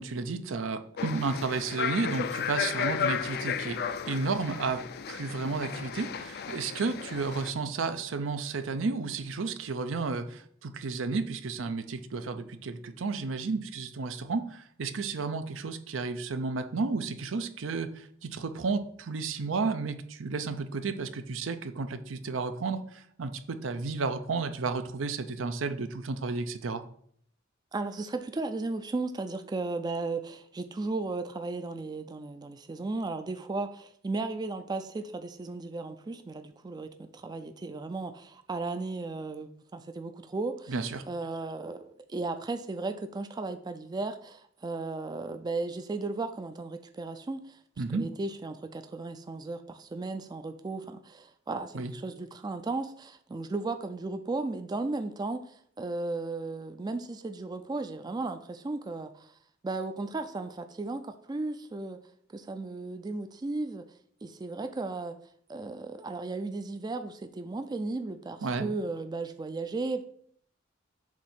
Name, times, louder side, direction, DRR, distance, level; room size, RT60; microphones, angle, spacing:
voice 1, 0.0-3.8 4.1-4.8 5.1-26.8 40.7-41.0 47.8-48.0 51.7-51.9 68.4-68.7, right 4 dB, 80° right, 9 dB, 0.6 m, -32 dB
sound 1, 1.0-7.5, left 7 dB, 55° left, 0.4 m, -34 dB
voice 2, 27.7-40.8 41.1-59.4 59.6-62.0 62.3-63.9 64.2-65.2 65.5-70.0, right 3 dB, 20° right, 8 dB, 0.3 m, -35 dB
7.3 x 2.7 x 5.8 m, 0.63 s
head